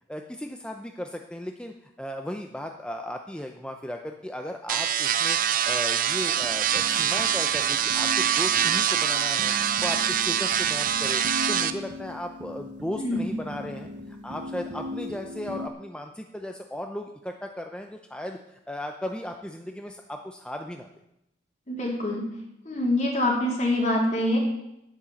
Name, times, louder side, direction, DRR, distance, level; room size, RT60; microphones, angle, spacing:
voice 1, 0.1-11.2 11.5-20.9, left 1 dB, 5° left, 4 dB, 0.6 m, -36 dB
sound 1, 4.7-11.7, right 9 dB, 50° right, 0.6 m, -24 dB
sound 2, 6.4-15.7, left 2 dB, 75° right, 0.9 m, -39 dB
voice 2, 21.7-22.3 22.7-24.4, left 1 dB, 40° left, -2 dB, 3.5 m, -25 dB
10.0 x 9.1 x 7.2 m, 0.85 s
head